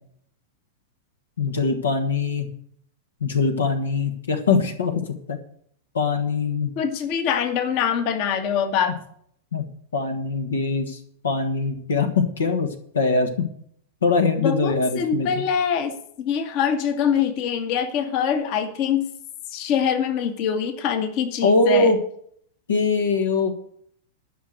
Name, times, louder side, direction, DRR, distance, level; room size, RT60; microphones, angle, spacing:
voice 1, 1.4-2.5 3.2-5.4 5.9-6.7 9.5-9.7 9.9-12.7 12.9-13.5 14.0-15.4 21.4-22.0 22.7-23.7, left 4 dB, 70° left, 6 dB, 1.5 m, -22 dB
voice 2, 6.8-9.0 14.4-19.0 19.5-21.9, left 7 dB, 45° left, 8 dB, 1.6 m, -24 dB
12.0 x 6.2 x 7.9 m, 0.64 s
figure-of-eight pair, 95°, 0 cm